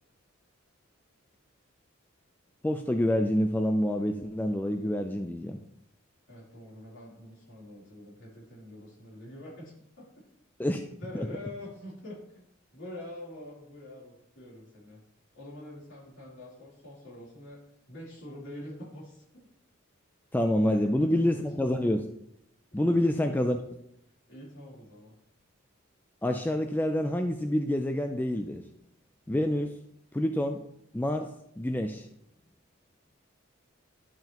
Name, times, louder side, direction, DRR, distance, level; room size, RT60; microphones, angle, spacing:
voice 1, 2.6-5.6 10.6-10.9 11.1-11.3 20.3-22.1 22.7-23.6 26.2-28.6 29.3-29.7 30.1-30.6 30.9-31.3 31.6-32.1, left 1 dB, 10° left, 5 dB, 0.3 m, -27 dB
voice 2, 6.3-10.1 11.0-12.5 12.7-15.0 15.3-19.5 20.6-21.8 22.7-23.5 24.3-25.2, left 1 dB, 65° left, -6 dB, 3.3 m, -45 dB
11.0 x 5.7 x 2.9 m, 0.76 s
head